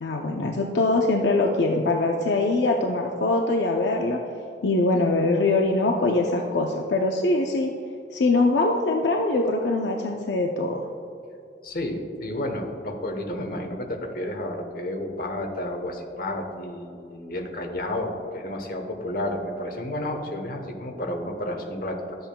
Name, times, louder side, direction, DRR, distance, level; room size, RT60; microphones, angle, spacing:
voice 1, 0.0-4.2 4.6-7.7 8.1-10.9, left 2 dB, 75° left, 1 dB, 0.5 m, -23 dB
voice 2, 11.6-22.2, left 1 dB, 55° left, 3 dB, 1.0 m, -31 dB
12.0 x 7.8 x 2.2 m, 2.5 s
head